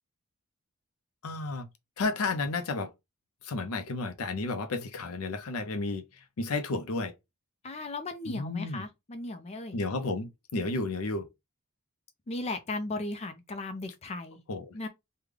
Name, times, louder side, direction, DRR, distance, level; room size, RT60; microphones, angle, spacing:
voice 1, 1.2-1.7 2.0-2.9 3.4-6.0 6.4-7.1 8.3-8.8 9.7-11.3 14.5-14.7, left 3 dB, 75° left, 0.6 m, -32 dB
voice 2, 7.6-9.8 12.3-14.4 14.7-14.9, left 2 dB, 30° left, 0.4 m, -36 dB
3.5 x 2.2 x 3.3 m
head